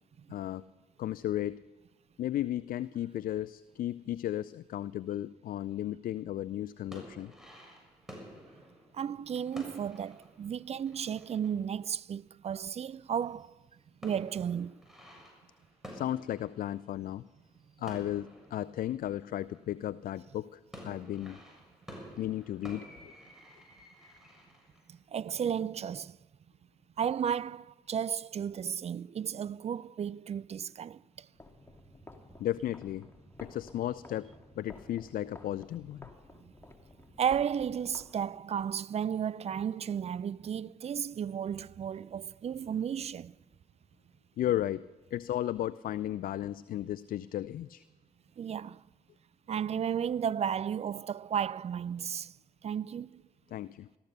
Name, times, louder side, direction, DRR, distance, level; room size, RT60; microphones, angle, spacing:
voice 1, 0.3-0.6 1.0-1.6 2.2-7.3 15.9-17.2 17.8-21.4 22.2-23.1 32.4-33.1 33.4-34.3 34.6-36.1 44.4-47.8 53.5-53.9, left 12 dB, 65° left, 0.4 m, -34 dB
sound 1, 6.8-13.0 13.2-19.9 20.4-25.0, equal, 5° right, 7.1 m, -51 dB
voice 2, 8.9-13.5 14.0-14.8 24.9-26.2 27.0-31.3 36.4-36.5 37.2-43.4 48.4-48.8 49.5-52.4 52.6-53.2, right 8 dB, 45° right, 0.4 m, -34 dB
sound 2, 31.3-38.7, left 1 dB, 15° left, 2.4 m, -53 dB
14.5 x 13.5 x 6.7 m
supercardioid pair, 55°, 16 cm